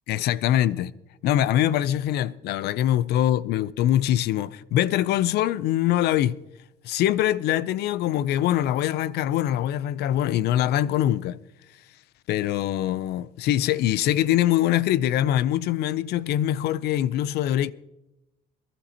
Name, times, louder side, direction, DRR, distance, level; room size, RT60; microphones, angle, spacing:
voice 1, 0.1-0.9 1.2-6.4 6.8-11.4 12.3-17.7, left 12 dB, 75° left, 0.5 m, -23 dB
23.0 x 12.0 x 2.9 m
cardioid pair, 110°, 17 cm